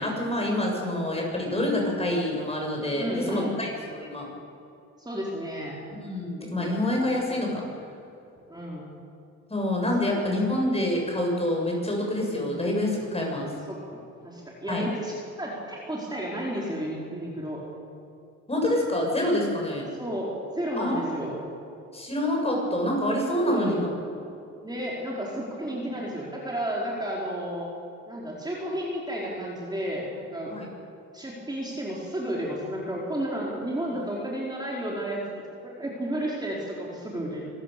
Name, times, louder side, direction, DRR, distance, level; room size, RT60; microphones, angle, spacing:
voice 1, 0.0-4.3 6.0-7.6 9.5-13.5 14.7-14.8 18.5-19.8 20.8-21.0 21.9-23.9 30.5-30.7 33.9-34.0 34.4-34.5, left 1 dB, 20° left, 0 dB, 7.2 m, -27 dB
voice 2, 3.0-3.5 5.0-5.8 6.4-6.7 8.5-8.8 10.0-10.2 12.3-12.6 13.7-17.6 19.9-21.4 23.4-24.0 24.6-27.7 28.1-30.5 31.1-37.5, equal, 15° right, -4 dB, 4.4 m, -32 dB
26.0 x 15.0 x 7.0 m, 2.6 s
cardioid pair, 90°, 30 cm